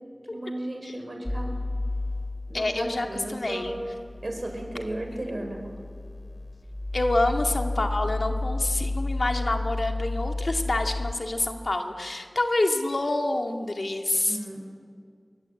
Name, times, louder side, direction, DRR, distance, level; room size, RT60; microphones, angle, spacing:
voice 1, 0.3-1.6 2.5-3.8 4.2-5.7 14.3-14.6, right 1 dB, 65° right, 3 dB, 5.7 m, -34 dB
sound 1, 1.3-11.1, left 2 dB, 25° left, 2.8 m, -32 dB
voice 2, 2.5-3.7 6.9-14.6, left 2 dB, 85° left, 4 dB, 2.2 m, -27 dB
28.0 x 23.0 x 8.5 m, 2.2 s
wide cardioid pair, 50°, 0 cm